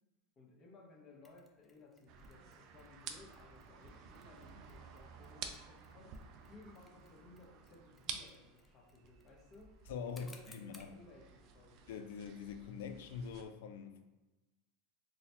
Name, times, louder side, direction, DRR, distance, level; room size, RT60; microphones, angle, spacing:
voice 1, 0.4-6.2 6.5-9.7 10.1-11.9, left 2 dB, 30° left, 1.0 m, -60 dB
Mechanisms, 1.2-11.0, left 2 dB, 10° left, 0.4 m, -65 dB
sound 1, 2.1-13.5, right 6 dB, 50° right, 0.4 m, -52 dB
voice 2, 9.9-10.9 11.9-14.0, left 6 dB, 80° left, 0.4 m, -44 dB
3.9 x 2.2 x 2.9 m
supercardioid pair, 120°, 0 cm